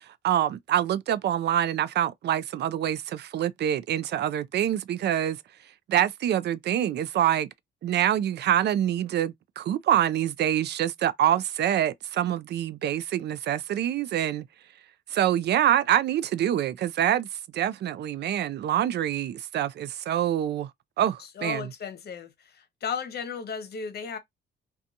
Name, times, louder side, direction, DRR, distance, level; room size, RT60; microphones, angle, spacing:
voice 1, 0.0-5.4 5.9-7.5 7.8-14.4 15.1-17.3 17.5-20.7 21.0-21.7, right 11 dB, 60° right, 0.4 m, -26 dB
voice 2, 21.4-22.3 22.8-24.2, left 6 dB, 55° left, 0.9 m, -34 dB
2.5 x 2.3 x 2.7 m
cardioid pair, 90°, 20 cm